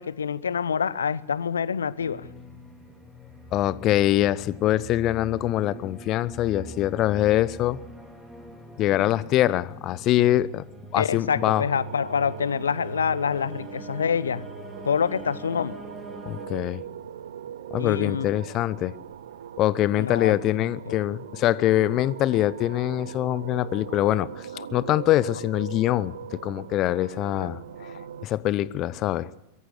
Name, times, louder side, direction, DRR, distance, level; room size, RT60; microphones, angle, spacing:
voice 1, 0.0-2.3 11.0-14.5 14.8-15.7 17.8-18.3 20.0-20.3 20.9-21.0 24.5-24.7 27.4-27.5 27.8-27.9, left 7 dB, 70° left, 0.8 m, -26 dB
sound 1, 2.0-16.5, right 1 dB, 5° right, 4.1 m, -42 dB
voice 2, 3.5-7.8 8.8-10.6 10.9-11.6 16.3-16.8 17.7-18.9 19.6-24.3 24.7-27.6 28.2-29.3, left 14 dB, 35° left, 0.9 m, -24 dB
sound 2, 11.3-28.3, right 9 dB, 60° right, 0.8 m, -41 dB
23.0 x 14.5 x 8.3 m
figure-of-eight pair, 90°, 0 cm